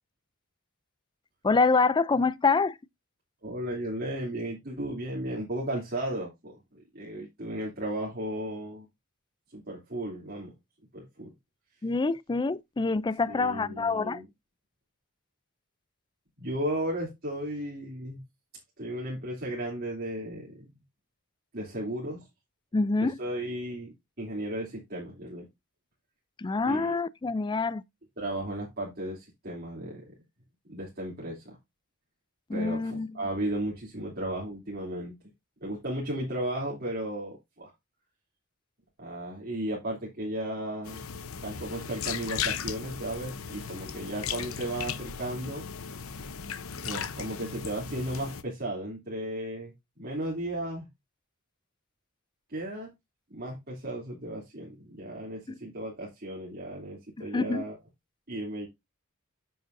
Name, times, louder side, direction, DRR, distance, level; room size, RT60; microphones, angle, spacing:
voice 1, 1.4-2.8 11.8-14.2 22.7-23.1 26.4-27.8 32.5-33.1 57.2-57.6, left 4 dB, 20° left, 0.4 m, -26 dB
voice 2, 3.4-8.9 9.5-10.5 10.9-11.3 13.3-14.2 16.4-18.2 18.8-20.7 21.5-22.3 23.0-25.5 26.6-27.0 28.2-30.1 30.7-31.6 32.5-35.1 35.6-37.7 39.0-41.0 41.4-45.7 46.8-50.9 52.5-52.9 53.3-57.8 58.3-58.7, right 1 dB, 50° right, 2.9 m, -35 dB
sound 1, 40.8-48.4, left 7 dB, 70° left, 0.9 m, -36 dB
9.2 x 7.6 x 2.6 m
head